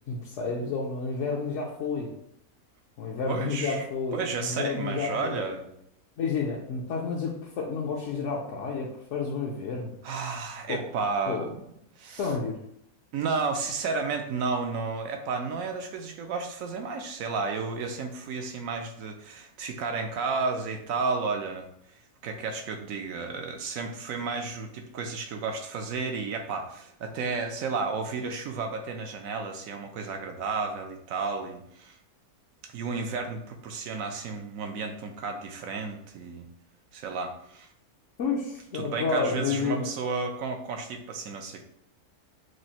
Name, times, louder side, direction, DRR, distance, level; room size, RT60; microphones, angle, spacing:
voice 1, 0.1-2.1 3.0-5.4 6.2-9.9 10.7-10.9 11.2-11.5 12.2-12.6 38.2-39.9, left 4 dB, 60° left, -3 dB, 0.9 m, -30 dB
voice 2, 3.3-3.9 4.1-5.7 10.0-11.6 12.0-12.2 13.1-21.7 22.2-32.0 32.6-36.5 36.9-37.7 38.7-41.6, right 4 dB, 70° right, 4 dB, 1.0 m, -32 dB
6.2 x 2.5 x 2.8 m, 0.73 s
omnidirectional pair, 1.6 m